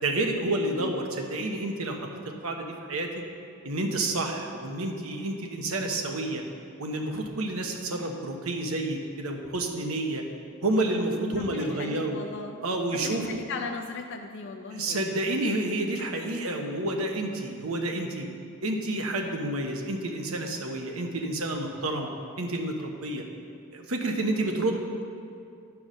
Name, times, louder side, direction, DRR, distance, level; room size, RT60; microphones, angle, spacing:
voice 1, 0.0-2.0 2.4-3.1 3.6-6.4 6.8-10.2 10.6-12.2 12.6-13.4 14.7-18.3 18.6-22.1 22.4-23.2 23.7-24.8, right 2 dB, 80° right, 3 dB, 1.1 m, -29 dB
voice 2, 0.6-1.0 11.4-12.6 12.9-15.0, left 4 dB, 55° left, 3 dB, 0.5 m, -37 dB
11.0 x 4.8 x 6.3 m, 2.5 s
head